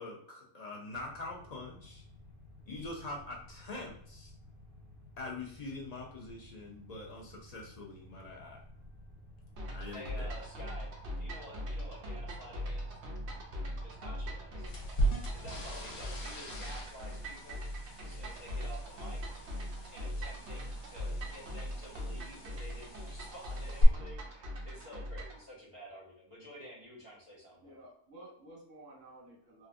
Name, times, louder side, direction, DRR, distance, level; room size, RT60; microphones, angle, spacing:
voice 1, 0.0-2.0 2.7-4.3 5.2-8.6 9.7-10.3, left 2 dB, 50° left, -2 dB, 0.4 m, -44 dB
sound 1, 0.9-15.7, left 1 dB, 50° right, 1.5 m, -55 dB
sound 2, 9.6-25.4, equal, 65° right, 0.9 m, -41 dB
voice 2, 9.9-12.9 13.8-14.7 15.3-17.6 18.0-19.2 19.9-27.8, equal, 25° right, -10 dB, 1.4 m, -50 dB
sound 3, 14.7-23.8, right 1 dB, 75° left, 1.1 m, -39 dB
voice 3, 27.6-29.7, right 1 dB, 85° right, -4 dB, 1.6 m, -53 dB
3.2 x 2.4 x 2.5 m, 0.64 s
omnidirectional pair, 1.3 m